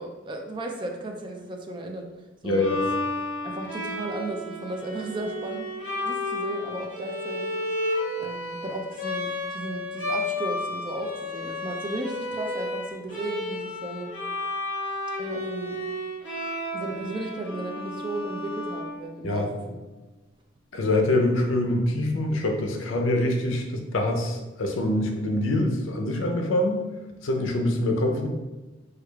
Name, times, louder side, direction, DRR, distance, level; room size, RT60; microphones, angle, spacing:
voice 1, 0.0-2.1 2.4-2.7 3.4-5.7 6.0-7.5 8.2-14.1 15.2-15.8 16.7-19.5, right 1 dB, 25° right, 3 dB, 0.3 m, -34 dB
voice 2, 2.4-2.9 19.2-19.5 20.7-26.8 27.2-28.3, left 1 dB, 80° left, 3 dB, 0.5 m, -25 dB
Bowed string instrument, 2.6-19.5, left 2 dB, 65° left, 1.3 m, -32 dB
4.7 x 2.3 x 2.2 m, 1.2 s
head